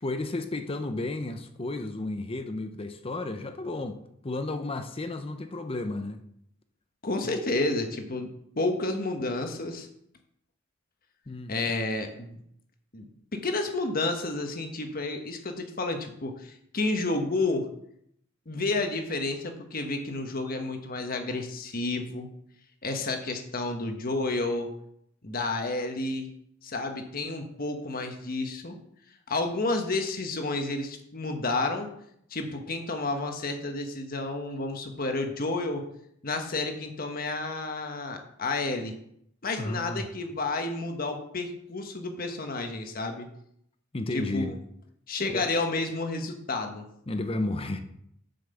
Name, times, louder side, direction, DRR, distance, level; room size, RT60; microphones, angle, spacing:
voice 1, 0.0-6.2 7.2-7.4 11.3-11.5 39.6-40.1 43.9-44.5 45.2-45.4 47.1-47.8, left 2 dB, 30° left, 7 dB, 0.7 m, -33 dB
voice 2, 7.0-8.3 8.5-9.9 11.5-12.4 12.9-17.7 18.5-22.3 22.8-24.7 25.2-26.3 26.6-28.7 29.3-31.9 32.3-35.8 36.2-38.9 39.4-43.3 44.1-44.5 45.1-46.9, left 2 dB, 45° left, 5 dB, 1.3 m, -30 dB
8.0 x 5.8 x 6.9 m, 0.72 s
head